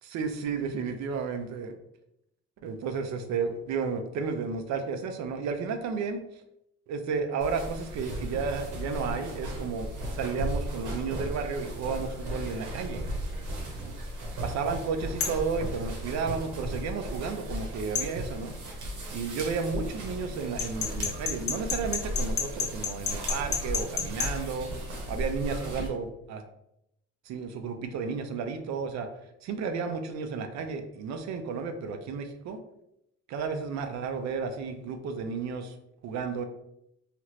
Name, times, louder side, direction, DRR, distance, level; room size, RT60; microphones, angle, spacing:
voice 1, 0.1-1.8 2.6-6.2 6.9-13.1 14.4-18.5 19.1-24.7 25.1-26.4 27.3-29.1 29.4-32.6 33.3-35.7 36.0-36.4, right 5 dB, 65° right, 6 dB, 0.5 m, -32 dB
sound 1, 7.4-25.9, right 1 dB, 85° right, 0.9 m, -36 dB
sound 2, 15.2-15.5 18.0-18.1 20.6-24.3, left 6 dB, 45° left, 0.6 m, -30 dB
2.9 x 2.4 x 3.1 m, 0.81 s
cardioid pair, 175°, 30 cm